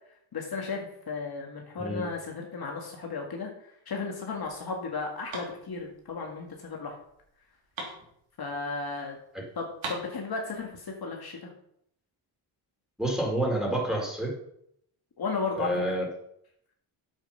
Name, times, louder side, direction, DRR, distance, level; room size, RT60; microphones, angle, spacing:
voice 1, 0.3-7.0 8.4-9.2 9.6-11.5 15.2-15.7, left 4 dB, 50° left, 0 dB, 2.1 m, -34 dB
sound 1, 4.3-8.9 9.2-9.3 9.5-10.8, right 3 dB, 70° right, 3.6 m, -42 dB
voice 2, 13.0-14.3 15.5-16.0, right 1 dB, ahead, -2 dB, 4.4 m, -28 dB
8.9 x 7.9 x 5.8 m, 0.73 s
cardioid pair, 90°, 48 cm